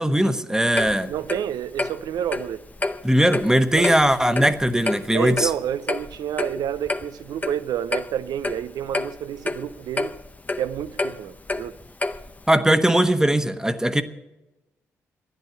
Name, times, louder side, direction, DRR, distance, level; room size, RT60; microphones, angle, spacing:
voice 1, 0.0-1.1 3.0-5.5 12.5-14.0, right 1 dB, 10° right, 1.2 m, -19 dB
Clock, 0.8-12.5, left 2 dB, 20° left, 0.8 m, -30 dB
voice 2, 1.1-2.6 3.8-3.9 5.1-10.2 10.6-11.8, right 10 dB, 70° right, 0.6 m, -29 dB
12.5 x 10.5 x 8.1 m
hypercardioid pair, 45°, 7 cm